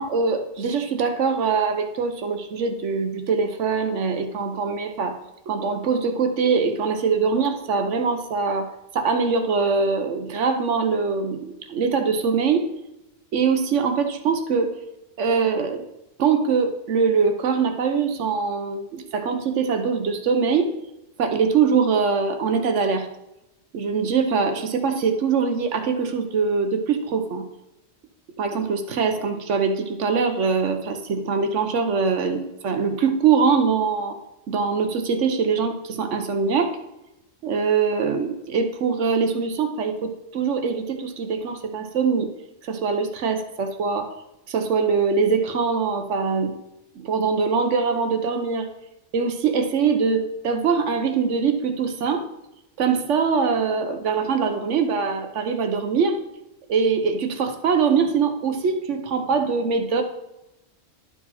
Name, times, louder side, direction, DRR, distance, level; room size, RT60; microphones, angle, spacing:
voice 1, 0.0-5.2 5.5-12.7 13.3-14.7 15.2-15.8 16.2-20.7 21.2-23.1 23.7-27.4 28.4-34.2 34.5-36.7 37.4-42.3 42.6-44.1 44.5-46.5 47.0-48.7 49.1-52.2 52.8-56.2 56.7-60.0, right 5 dB, 65° right, 6 dB, 1.2 m, -23 dB
11.5 x 4.8 x 4.2 m, 0.91 s
omnidirectional pair, 1.3 m